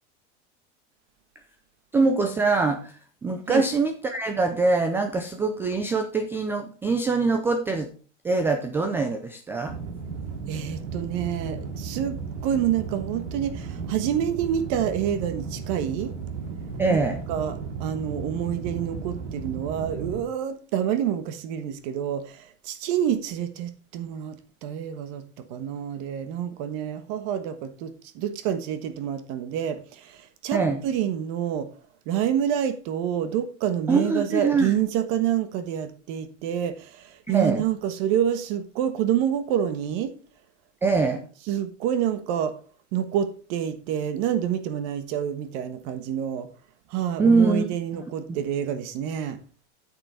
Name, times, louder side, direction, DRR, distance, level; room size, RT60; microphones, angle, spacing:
voice 1, 1.9-7.9 8.2-9.8 16.8-17.2 30.5-30.8 33.9-34.7 37.3-37.6 40.8-41.3 47.2-47.7 47.9-48.1, right 3 dB, 5° right, 0.3 m, -23 dB
sound 1, 9.7-20.2, right 5 dB, 75° right, 2.7 m, -35 dB
voice 2, 10.5-16.1 16.9-17.0 17.3-25.2 25.5-31.7 32.1-40.1 41.5-42.5 42.9-46.5 46.9-49.4, right 9 dB, 45° right, 1.3 m, -28 dB
8.9 x 6.8 x 4.5 m
supercardioid pair, 150°, 36 cm